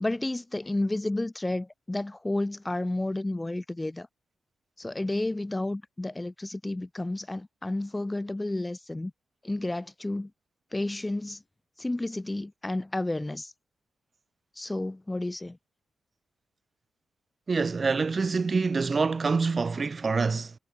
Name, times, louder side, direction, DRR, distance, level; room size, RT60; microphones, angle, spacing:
voice 1, 0.0-4.1 4.8-9.1 9.4-10.3 10.7-11.4 11.8-13.5 14.6-15.6, left 2 dB, 10° left, 0.4 m, -31 dB
voice 2, 17.5-20.5, right 4 dB, 30° right, 0.7 m, -26 dB
wide cardioid pair, 155°, 0 cm